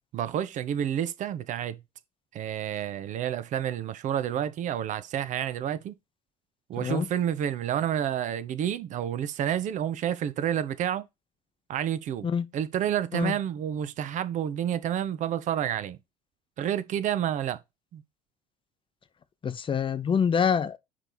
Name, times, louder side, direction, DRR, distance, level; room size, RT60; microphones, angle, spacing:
voice 1, 0.1-1.8 2.3-6.0 6.7-11.1 11.7-12.3 12.5-16.0 16.6-17.6 17.9-18.0, right 10 dB, 40° right, 0.8 m, -29 dB
voice 2, 19.4-20.8, left 7 dB, 25° left, 0.8 m, -26 dB
9.8 x 3.4 x 4.3 m
figure-of-eight pair, 60°, 19 cm